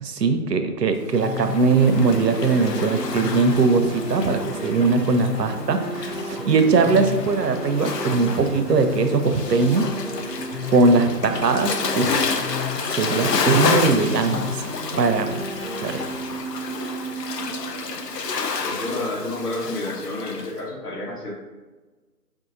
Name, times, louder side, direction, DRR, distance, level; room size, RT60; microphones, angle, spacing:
voice 1, 0.0-9.9 10.7-12.3 12.9-14.6 15.0-15.5 15.8-16.1, right 4 dB, 90° right, 7 dB, 0.7 m, -20 dB
Waves surf, 1.1-20.5, left 5 dB, 85° left, 0.6 m, -30 dB
sound 1, 1.1-18.9, left 1 dB, 40° left, 0.5 m, -32 dB
voice 2, 18.6-21.3, left 1 dB, 70° left, -3 dB, 1.4 m, -30 dB
4.8 x 2.7 x 2.5 m, 1.3 s
figure-of-eight pair, 175°, 47 cm